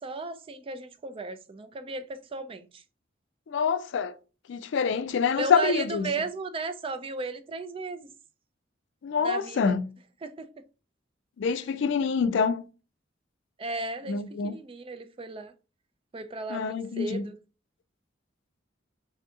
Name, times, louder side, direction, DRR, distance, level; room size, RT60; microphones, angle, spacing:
voice 1, 0.0-2.1 2.3-2.8 5.4-8.1 9.2-9.7 10.2-10.5 11.5-11.6 13.6-15.5 16.1-17.3, right 3 dB, 30° right, 0.4 m, -35 dB
voice 2, 3.5-4.1 4.5-6.1 9.0-9.9 11.4-12.6 14.1-14.5 16.5-17.2, left 6 dB, 65° left, 0.4 m, -26 dB
3.4 x 2.7 x 3.6 m
head